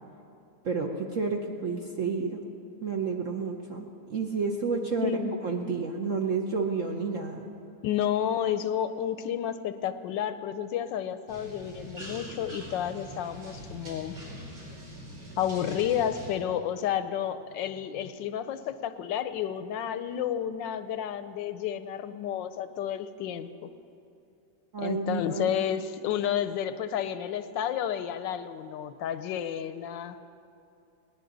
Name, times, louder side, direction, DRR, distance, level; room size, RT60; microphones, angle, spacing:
voice 1, 0.6-2.4 2.8-5.2 5.4-7.5 24.7-25.5, right 4 dB, 50° right, 1 dB, 1.0 m, -30 dB
voice 2, 5.0-5.4 7.8-14.2 15.4-23.7 24.8-30.2, left 9 dB, 80° left, 11 dB, 1.3 m, -31 dB
sound 1, 11.3-16.3, equal, 70° right, 4.8 m, -43 dB
20.5 x 17.5 x 3.9 m, 2.7 s
omnidirectional pair, 2.1 m